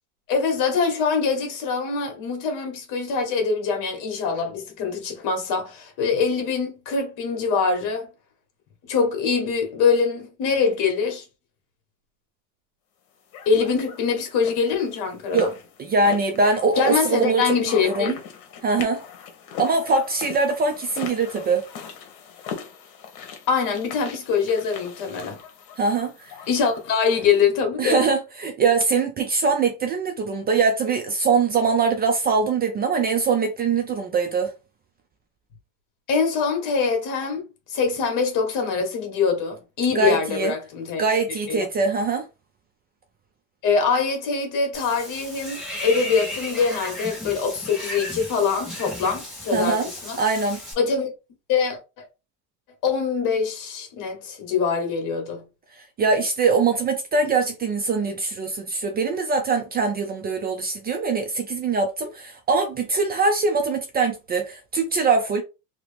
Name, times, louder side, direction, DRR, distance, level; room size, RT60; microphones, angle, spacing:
voice 1, 0.3-8.1 8.9-11.2 13.4-15.5 16.8-18.2 23.5-25.4 26.5-28.1 36.1-41.0 41.5-41.7 43.6-50.2 50.8-51.1 51.5-52.1 52.8-55.4, left 5 dB, 55° left, 1.6 m, -24 dB
sound 1, 13.3-27.4, left 7 dB, 70° left, 1.2 m, -40 dB
voice 2, 15.8-17.6 17.8-18.1 18.6-19.0 19.6-21.6 25.8-26.4 27.8-34.5 39.9-40.5 41.0-42.3 49.5-49.9 50.2-50.6 56.0-65.4, right 4 dB, 25° right, 0.4 m, -22 dB
Water / Bathtub (filling or washing), 44.7-50.7, left 1 dB, ahead, 1.4 m, -35 dB
2.9 x 2.8 x 3.4 m
cardioid pair, 145°, 39 cm